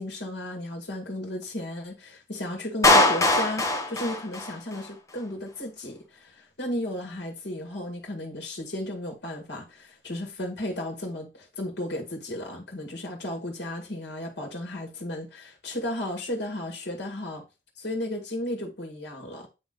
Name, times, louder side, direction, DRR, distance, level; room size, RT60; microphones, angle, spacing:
voice 1, 0.0-17.4 17.8-19.5, left 1 dB, 70° left, 2.0 m, -34 dB
Clapping, 2.8-4.9, left 2 dB, 15° left, 1.0 m, -21 dB
8.7 x 3.2 x 3.8 m
head